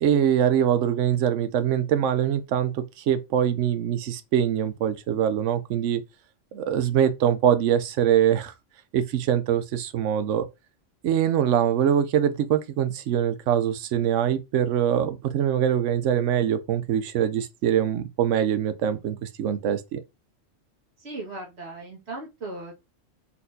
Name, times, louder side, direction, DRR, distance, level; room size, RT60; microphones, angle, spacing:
voice 1, 0.0-6.0 6.5-8.5 8.9-10.5 11.0-20.0, right 9 dB, 80° right, 1.0 m, -23 dB
voice 2, 21.0-22.7, right 2 dB, 60° right, 1.9 m, -37 dB
4.3 x 4.1 x 2.6 m
omnidirectional pair, 1.3 m